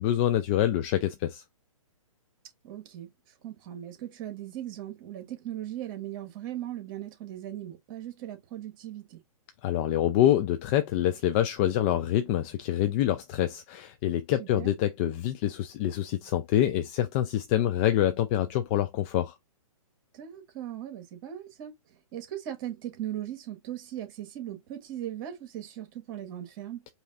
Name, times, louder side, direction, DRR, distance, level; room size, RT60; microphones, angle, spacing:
voice 1, 0.0-1.4 9.6-19.3, left 12 dB, 20° left, 0.3 m, -26 dB
voice 2, 2.6-3.1 3.4-9.2 14.4-14.7 20.1-21.7 22.1-26.8, right 12 dB, 35° right, 1.5 m, -38 dB
5.1 x 2.7 x 2.5 m
hypercardioid pair, 135°, 18 cm